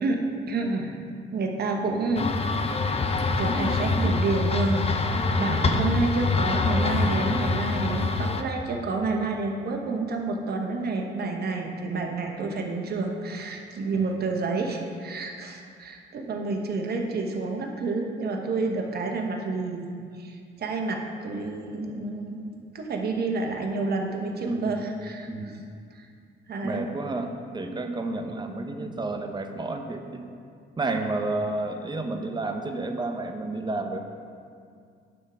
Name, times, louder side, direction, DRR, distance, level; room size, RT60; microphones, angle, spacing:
voice 1, 0.5-0.9 1.3-2.3 3.3-19.9 20.2-25.3 25.9-26.1 26.5-26.9 28.8-28.9, right 3 dB, 55° right, 2 dB, 1.1 m, -29 dB
sound 1, 2.2-8.4, left 3 dB, 30° left, 0.6 m, -25 dB
voice 2, 5.6-6.0 13.9-14.2 24.4-24.8 25.3-25.6 26.6-30.2 30.8-34.0, right 2 dB, 20° right, 5 dB, 0.8 m, -31 dB
11.0 x 3.7 x 5.6 m, 2.3 s
cardioid pair, 90°, 20 cm